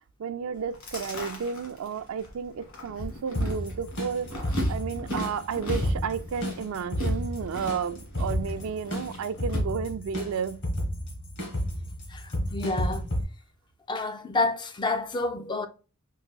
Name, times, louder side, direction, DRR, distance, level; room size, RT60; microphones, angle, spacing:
voice 1, 0.2-10.6, right 6 dB, 75° right, 0.4 m, -32 dB
Chewing mastication, 0.5-9.6, left 1 dB, 75° left, 1.6 m, -39 dB
sound 1, 3.3-13.2, equal, 55° left, 1.4 m, -31 dB
voice 2, 12.1-13.1 13.9-15.7, left 2 dB, 20° left, 0.3 m, -29 dB
4.8 x 2.6 x 2.3 m
head